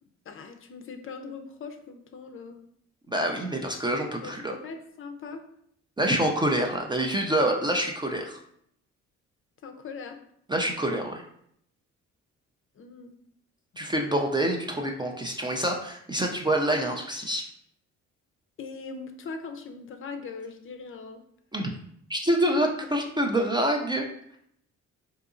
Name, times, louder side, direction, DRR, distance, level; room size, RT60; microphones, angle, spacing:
voice 1, 0.3-2.6 4.2-5.4 9.6-10.2 12.8-13.2 18.6-21.2, left 4 dB, 45° left, 5 dB, 0.5 m, -40 dB
voice 2, 3.1-4.5 6.0-8.4 10.5-11.2 13.8-17.4 21.5-21.7 22.1-24.0, right 1 dB, 15° right, 1 dB, 0.4 m, -26 dB
3.7 x 2.8 x 2.5 m, 0.70 s
cardioid pair, 90°, 30 cm